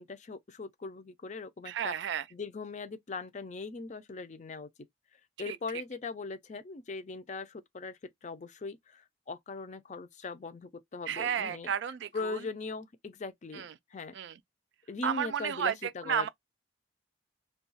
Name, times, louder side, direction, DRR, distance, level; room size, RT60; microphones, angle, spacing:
voice 1, 0.0-1.9 2.3-4.7 5.1-11.7 12.1-14.1 14.9-16.3, left 4 dB, 40° left, 0.4 m, -40 dB
voice 2, 1.7-2.2 5.5-5.6 11.1-12.4 13.5-13.7 14.1-14.3 15.0-15.7 16.1-16.3, right 8 dB, 65° right, 0.3 m, -32 dB
2.3 x 2.3 x 3.9 m
head